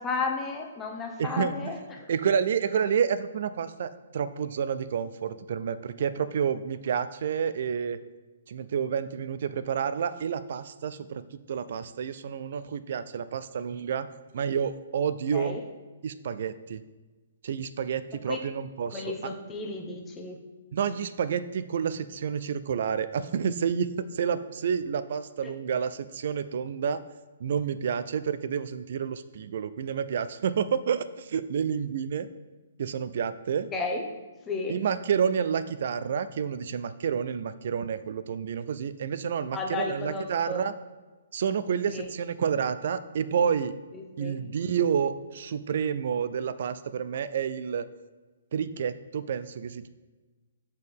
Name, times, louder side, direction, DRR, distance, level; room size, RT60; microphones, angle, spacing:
voice 1, 0.0-2.1 15.3-15.6 18.3-18.4 18.9-20.4 25.4-25.5 33.7-34.0 34.5-34.8 39.5-40.6 41.9-42.1 43.9-44.4, left 4 dB, 15° left, 1 dB, 0.8 m, -33 dB
voice 2, 1.2-1.6 2.1-8.0 8.5-11.2 11.5-14.1 14.3-15.6 16.0-16.8 17.4-19.1 20.7-23.9 24.1-27.0 27.4-32.3 32.8-33.7 34.7-40.7 41.3-43.7 44.2-47.9 48.5-49.9, right 7 dB, 60° right, 14 dB, 0.3 m, -29 dB
6.3 x 4.4 x 3.5 m, 1.2 s
hypercardioid pair, 140°, 0 cm